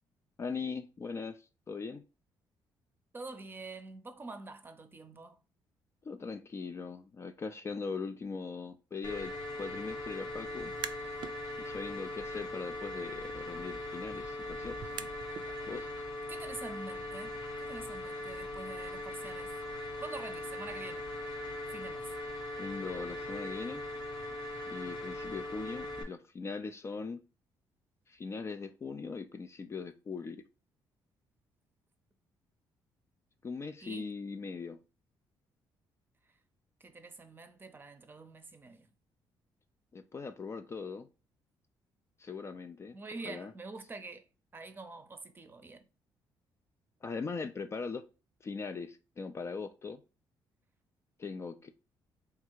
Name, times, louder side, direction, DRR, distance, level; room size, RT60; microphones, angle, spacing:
voice 1, 0.4-2.0 6.0-9.3 9.6-10.7 11.0-11.2 11.6-14.8 15.7-15.9 22.6-23.8 24.7-27.2 28.1-30.4 33.4-34.8 39.9-41.1 42.2-43.0 43.3-43.5 47.0-48.0 48.4-50.0 51.2-51.7, left 4 dB, 30° left, 0.4 m, -40 dB
voice 2, 3.1-5.4 16.3-19.5 20.0-21.1 21.7-22.1 33.8-34.1 36.8-38.9 42.9-44.3 44.5-45.9, right 3 dB, 25° right, 0.6 m, -46 dB
sound 1, 9.0-26.0, left 1 dB, 70° left, 1.2 m, -40 dB
sound 2, 10.6-11.4 11.8-15.5, right 9 dB, 60° right, 0.4 m, -47 dB
3.6 x 2.4 x 4.5 m
cardioid pair, 100°, 9 cm